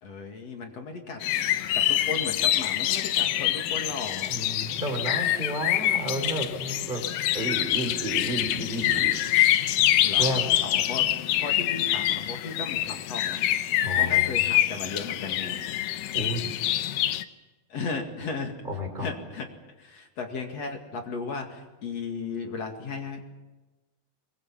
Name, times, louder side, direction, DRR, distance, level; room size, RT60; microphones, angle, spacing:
voice 1, 0.0-1.2 1.7-4.3 8.9-9.0 10.0-13.4 14.0-15.7 17.7-18.5 19.0-19.5 19.8-23.3, left 4 dB, 50° left, 3 dB, 2.9 m, -36 dB
sound 1, 1.2-17.2, left 13 dB, 75° left, 2.5 m, -25 dB
voice 2, 4.3-7.0 7.3-9.2 10.2-10.5 13.8-14.5 16.1-16.5 18.7-19.1, right 1 dB, 10° right, 3 dB, 4.0 m, -32 dB
24.5 x 22.0 x 7.3 m, 1.1 s
omnidirectional pair, 4.3 m